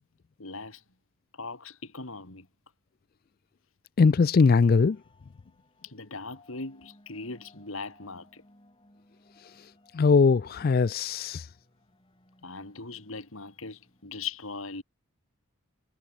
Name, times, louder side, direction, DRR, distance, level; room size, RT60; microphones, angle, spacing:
voice 1, 0.4-0.8 1.4-2.5 5.8-8.4 12.4-14.8, left 4 dB, 70° left, 3.2 m, -39 dB
voice 2, 4.0-5.0 9.9-11.5, left 4 dB, 45° left, 0.4 m, -21 dB
sound 1, 4.6-14.1, left 1 dB, 25° left, 7.0 m, -62 dB
head